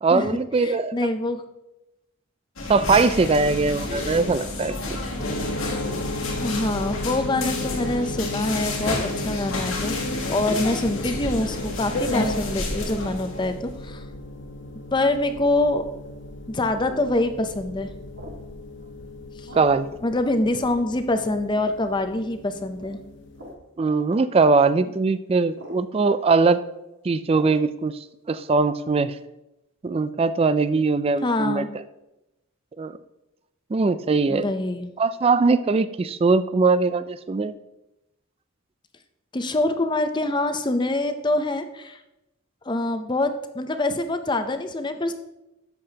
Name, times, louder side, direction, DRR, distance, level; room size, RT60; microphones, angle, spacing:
voice 1, 0.0-0.9 2.7-4.8 19.5-20.0 23.8-26.6 27.0-27.9 28.3-29.2 29.8-31.6 32.8-32.9 33.7-34.5 35.0-37.5, right 4 dB, 30° right, 13 dB, 0.3 m, -21 dB
voice 2, 0.6-1.4 6.4-9.9 10.3-14.0 14.9-15.9 16.5-17.9 19.4-19.5 20.0-23.0 31.2-31.7 34.3-34.9 39.3-42.0 42.7-45.1, left 2 dB, 20° left, 8 dB, 0.5 m, -25 dB
sound 1, 2.6-13.7, left 2 dB, 85° left, 1.9 m, -30 dB
sound 2, 5.2-23.5, left 2 dB, 60° left, 0.9 m, -36 dB
sound 3, 14.9-15.3 16.7-17.0 18.2-18.5 19.5-19.8 20.6-20.8 21.5-21.7 22.8-23.0 23.3-23.6 24.8-25.0 25.5-25.8 27.3-27.6, right 1 dB, 70° right, 1.9 m, -43 dB
11.5 x 7.6 x 2.8 m, 0.92 s
head